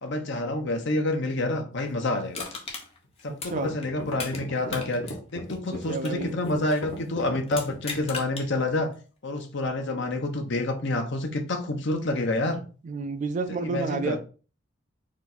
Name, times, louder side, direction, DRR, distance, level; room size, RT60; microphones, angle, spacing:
voice 1, 0.0-2.4 3.2-5.0 5.3-8.9 9.2-12.6 13.5-14.2, left 2 dB, 65° left, 0.8 m, -28 dB
Crushing, 2.3-4.4 4.7-6.9 7.5-8.5 8.9-9.0, left 4 dB, 30° left, 0.9 m, -37 dB
sound 1, 3.0-3.1 3.5-8.2, equal, 85° left, 1.3 m, -37 dB
voice 2, 5.7-6.4 12.8-14.2, right 3 dB, 40° right, 0.3 m, -30 dB
4.5 x 2.5 x 4.1 m
head